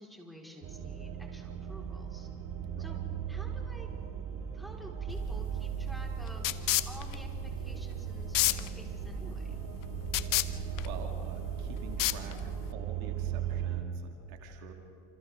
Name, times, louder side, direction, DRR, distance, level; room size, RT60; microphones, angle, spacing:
voice 1, 0.0-2.3 2.8-3.0 3.3-3.9 4.5-9.6, equal, ahead, -2 dB, 4.5 m, -50 dB
sound 1, 0.6-13.8, right 9 dB, 55° right, 2.2 m, -37 dB
sound 2, 5.1-12.7, left 16 dB, 55° left, 0.8 m, -33 dB
voice 2, 10.5-14.7, right 6 dB, 80° right, 3 dB, 2.3 m, -47 dB
29.0 x 27.0 x 3.7 m, 2.8 s
supercardioid pair, 90°, 40 cm